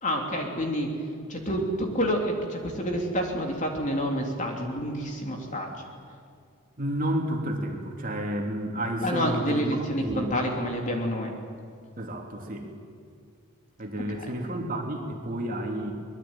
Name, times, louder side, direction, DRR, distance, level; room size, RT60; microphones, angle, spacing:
voice 1, 0.0-0.9 1.3-5.8 9.0-11.3 14.2-14.3, equal, 35° left, 1 dB, 3.3 m, -28 dB
voice 2, 6.8-9.7 10.0-10.3 12.0-12.7 13.8-15.9, right 1 dB, 40° right, 1 dB, 3.0 m, -31 dB
24.5 x 20.5 x 9.0 m, 2.2 s
head